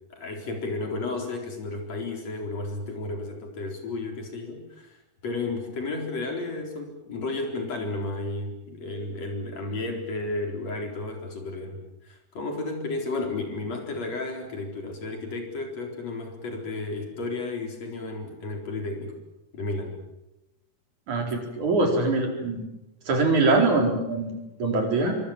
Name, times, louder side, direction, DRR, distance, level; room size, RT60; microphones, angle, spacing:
voice 1, 0.1-5.0 5.2-11.8 12.0-19.2 19.5-20.0, left 2 dB, 60° left, 2 dB, 5.3 m, -32 dB
voice 2, 21.1-22.7 23.1-25.2, right 3 dB, 75° right, 2 dB, 5.8 m, -23 dB
25.5 x 24.0 x 7.4 m, 0.94 s
omnidirectional pair, 3.5 m